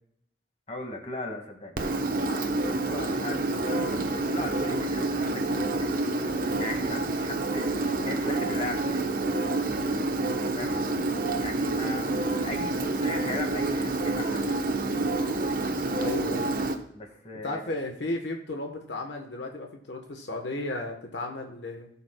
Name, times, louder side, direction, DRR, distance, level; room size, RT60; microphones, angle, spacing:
voice 1, 0.7-6.0 6.6-9.1 10.5-11.0 11.4-14.7 16.9-17.8, left 2 dB, 35° left, 2 dB, 2.0 m, -38 dB
Engine, 1.8-16.8, right 2 dB, 50° right, 1.0 m, -28 dB
voice 2, 16.0-16.6 17.4-21.9, left 2 dB, 75° left, 3 dB, 1.2 m, -34 dB
18.0 x 7.2 x 2.3 m, 0.73 s
head